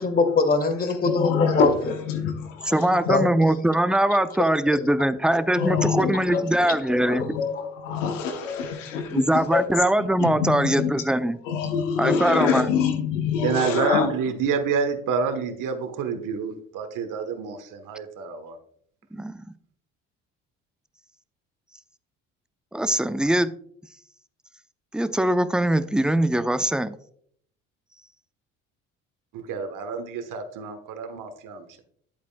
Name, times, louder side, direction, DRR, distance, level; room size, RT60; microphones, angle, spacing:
voice 1, 0.0-1.7 3.1-3.3 6.0-6.1, left 3 dB, 25° left, 9 dB, 1.6 m, -22 dB
voice 2, 1.0-3.3 5.5-6.4 7.1-9.2 9.5-9.7 10.2-10.9 11.4-14.1, left 6 dB, 85° left, 5 dB, 1.1 m, -26 dB
voice 3, 2.7-7.2 9.1-11.4 12.0-12.7 19.1-19.4 22.7-23.5 24.9-26.9, right 1 dB, ahead, 12 dB, 0.6 m, -22 dB
voice 4, 13.4-18.6 29.3-31.7, right 5 dB, 55° right, 6 dB, 1.3 m, -28 dB
10.5 x 8.3 x 2.3 m, 0.63 s
hypercardioid pair, 60°, 37 cm